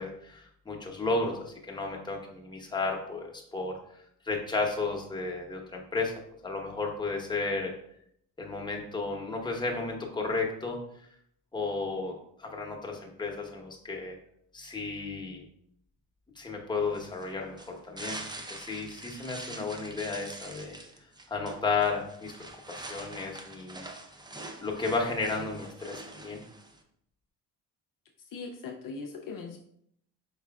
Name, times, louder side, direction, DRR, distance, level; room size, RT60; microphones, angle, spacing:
voice 1, 0.0-3.7 4.2-6.1 6.4-7.7 8.4-10.8 11.5-14.2 14.5-15.5 16.4-20.8 21.3-23.9 24.6-26.4, left 3 dB, 10° left, 0 dB, 0.9 m, -33 dB
sound 1, 16.9-26.8, right 2 dB, 10° right, 0.4 m, -45 dB
voice 2, 28.2-29.6, left 4 dB, 55° left, 1 dB, 0.5 m, -40 dB
4.8 x 3.1 x 2.3 m, 0.70 s
supercardioid pair, 70°, 40 cm